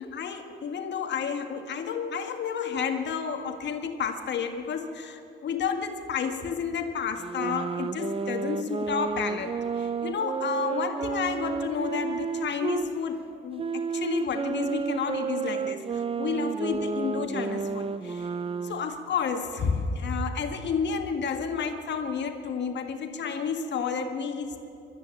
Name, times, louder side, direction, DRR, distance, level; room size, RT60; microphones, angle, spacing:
voice 1, 0.0-18.3 18.6-24.6, left 6 dB, 60° left, 6 dB, 1.9 m, -31 dB
sound 1, 7.2-12.9 13.6-18.9, right 5 dB, 30° right, 0.6 m, -31 dB
21.5 x 13.5 x 9.0 m, 2.8 s
cardioid pair, 90°, 20 cm